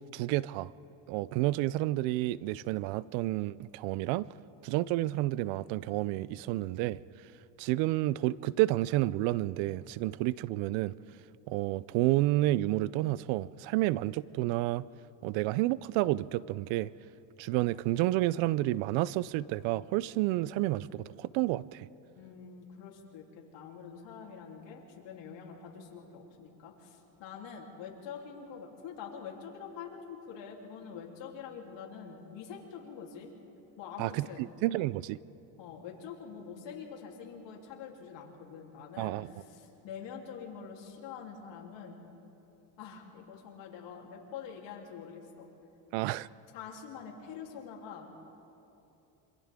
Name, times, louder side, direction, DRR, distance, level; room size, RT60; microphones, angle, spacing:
voice 1, 0.1-0.7 1.1-4.3 4.6-7.0 7.6-10.9 11.5-14.8 15.2-16.9 17.4-21.9 34.0-35.2 39.0-39.3 45.9-46.3, right 17 dB, 75° right, 20 dB, 0.6 m, -30 dB
voice 2, 22.2-33.3 33.8-34.5 35.6-42.0 42.8-45.5 46.5-48.1, left 7 dB, 70° left, -1 dB, 3.6 m, -45 dB
27.0 x 26.0 x 3.7 m, 3.0 s
supercardioid pair, 105°, 46 cm